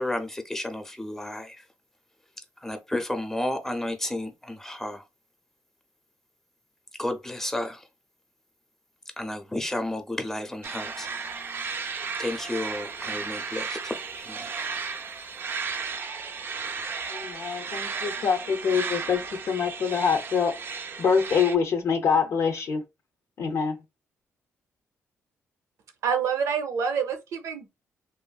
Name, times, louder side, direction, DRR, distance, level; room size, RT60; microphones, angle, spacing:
voice 1, 0.0-1.6 2.6-5.0 7.0-7.8 9.2-11.1 12.2-14.5, left 1 dB, 10° left, 0.6 m, -32 dB
sound 1, 10.6-21.5, right 5 dB, 45° right, 0.4 m, -34 dB
voice 2, 17.1-20.5 21.0-22.8 23.4-23.8, left 6 dB, 65° left, 0.5 m, -25 dB
voice 3, 26.0-27.7, right 6 dB, 85° right, 0.7 m, -27 dB
3.0 x 2.5 x 2.3 m
cardioid pair, 105°, 5 cm